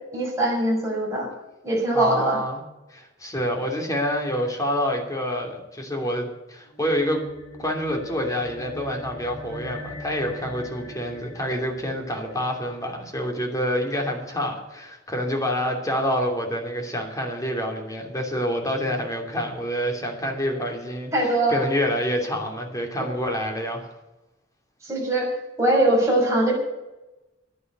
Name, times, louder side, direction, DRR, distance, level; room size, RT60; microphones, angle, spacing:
voice 1, 0.1-1.3 1.6-2.4 21.1-21.6 23.0-23.1 24.8-26.5, right 1 dB, 15° right, -3 dB, 6.0 m, -22 dB
voice 2, 1.9-2.6 2.9-7.2 7.6-23.9, equal, 20° left, 2 dB, 2.9 m, -27 dB
sound 1, 6.6-13.3, left 1 dB, 80° left, 4.4 m, -41 dB
11.0 x 10.5 x 8.1 m, 1.0 s
head